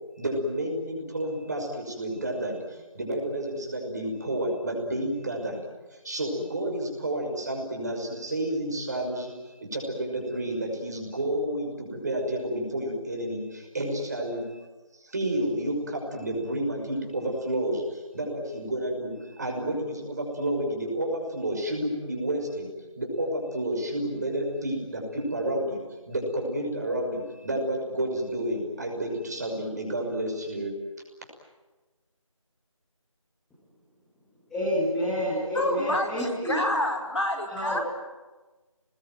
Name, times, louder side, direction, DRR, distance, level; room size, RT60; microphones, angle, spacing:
voice 1, 0.2-9.3 9.6-14.6 14.9-22.7 23.0-30.8, right 1 dB, 30° right, 1 dB, 5.9 m, -30 dB
voice 2, 34.5-36.6 37.5-37.8, equal, ahead, -9 dB, 1.8 m, -28 dB
voice 3, 35.5-37.8, left 1 dB, 60° left, 3 dB, 5.3 m, -28 dB
28.5 x 20.5 x 9.3 m, 1.2 s
figure-of-eight pair, 170°, 17 cm